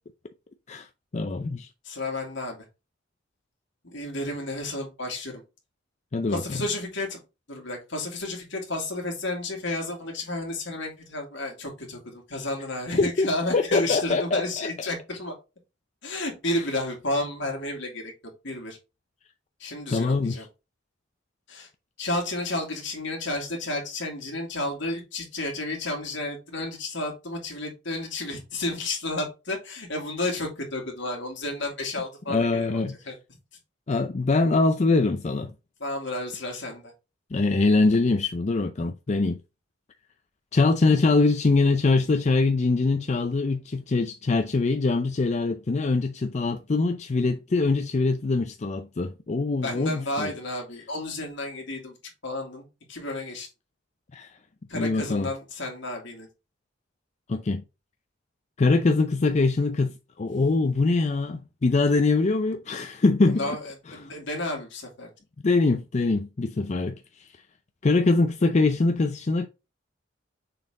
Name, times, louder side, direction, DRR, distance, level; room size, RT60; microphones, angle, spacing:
voice 1, 1.1-1.7 6.1-6.6 13.0-14.7 16.5-16.6 19.9-20.4 32.3-33.0 33.9-35.5 37.3-39.4 40.5-50.3 54.1-54.3 54.7-55.3 57.3-57.6 58.6-63.6 65.4-67.3 67.8-69.5, left 3 dB, 35° left, 0.5 m, -23 dB
voice 2, 1.8-2.6 3.8-5.4 6.3-7.2 7.5-15.3 16.0-18.1 18.4-18.8 19.6-20.5 21.5-21.7 22.0-33.1 35.8-36.9 49.6-52.0 52.2-53.5 54.7-56.3 60.3-60.5 63.3-65.1, left 2 dB, 70° left, 2.4 m, -32 dB
6.7 x 4.2 x 3.7 m
head